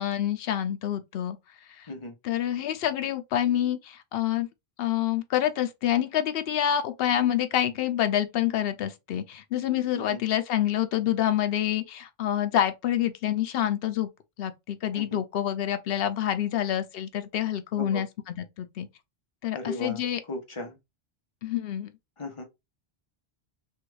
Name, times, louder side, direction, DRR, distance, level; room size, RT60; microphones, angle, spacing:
voice 1, 0.0-1.4 1.8-1.9 2.2-4.5 4.8-14.1 14.4-18.9 19.4-20.2 21.4-21.9, left 11 dB, 70° left, 0.8 m, -27 dB
voice 2, 19.5-20.8 22.2-22.4, left 2 dB, 35° left, 0.7 m, -36 dB
3.3 x 2.3 x 3.1 m
omnidirectional pair, 1.0 m